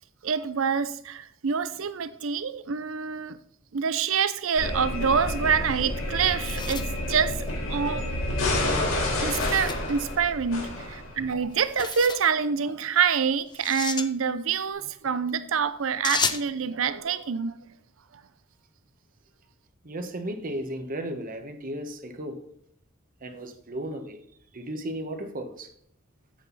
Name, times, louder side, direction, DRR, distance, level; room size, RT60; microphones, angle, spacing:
voice 1, 0.2-3.4 3.7-8.1 9.0-17.6, right 6 dB, 75° right, 0.6 m, -26 dB
sound 1, 4.6-11.4, left 1 dB, 80° left, 3.3 m, -29 dB
sound 2, 6.1-7.9 9.3-9.9 11.6-12.3 13.5-14.1 16.0-16.5, left 5 dB, 20° left, 0.8 m, -33 dB
voice 2, 19.8-22.4 23.2-24.2 24.5-25.7, right 1 dB, 45° right, 1.3 m, -35 dB
8.7 x 7.8 x 4.0 m
head